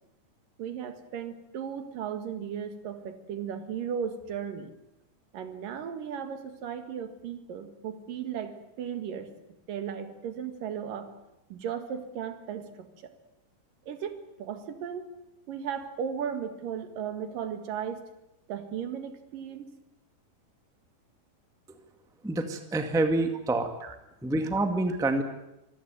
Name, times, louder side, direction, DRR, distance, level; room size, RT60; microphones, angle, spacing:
voice 1, 0.6-4.7 5.3-9.3 9.7-11.1 11.5-13.1 13.9-15.1 15.5-18.0 18.5-19.7 23.8-24.0 24.9-25.0, right 8 dB, 90° right, 8 dB, 3.6 m, -36 dB
voice 2, 22.2-23.7 24.2-25.2, right 2 dB, ahead, 6 dB, 1.2 m, -27 dB
26.0 x 15.0 x 9.4 m, 0.89 s
omnidirectional pair, 3.7 m